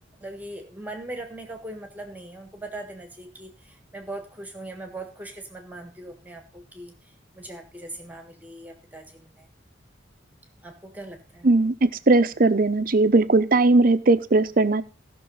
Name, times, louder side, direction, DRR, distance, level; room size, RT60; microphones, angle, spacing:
voice 1, 0.2-9.5 10.6-11.5, right 1 dB, 10° right, 5 dB, 1.4 m, -40 dB
voice 2, 11.4-14.8, right 2 dB, 45° right, 13 dB, 0.7 m, -19 dB
15.0 x 6.1 x 5.5 m, 0.35 s
head